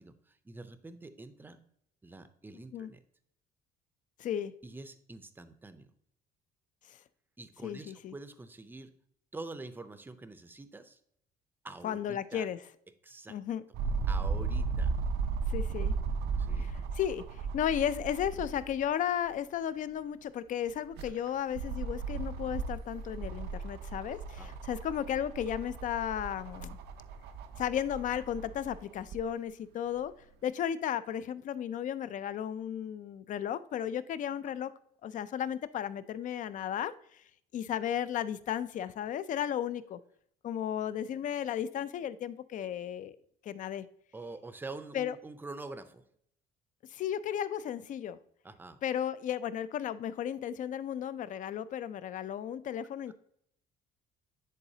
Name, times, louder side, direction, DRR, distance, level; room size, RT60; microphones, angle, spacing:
voice 1, 0.0-1.6 2.0-3.0 4.6-5.9 7.4-8.9 9.3-11.0 11.6-12.5 13.0-13.4 14.1-14.9 16.4-16.7 24.4-24.6 44.1-46.0 48.4-48.8, right 3 dB, 10° right, 10 dB, 0.5 m, -46 dB
voice 2, 4.2-4.5 6.9-7.0 7.6-8.1 11.8-12.6 13.3-13.6 15.5-15.9 16.6-26.8 27.6-30.1 30.4-34.7 35.0-37.2 37.5-40.0 40.4-43.2 43.4-43.8 44.9-45.2 46.9-48.2 48.8-53.1, left 9 dB, 50° left, 15 dB, 0.4 m, -34 dB
sound 1, 13.7-18.8 19.3-19.4 20.7-29.2 30.0-30.1, right 4 dB, 75° right, 0.6 m, -35 dB
10.0 x 4.0 x 2.7 m, 0.70 s
cardioid pair, 110°, 17 cm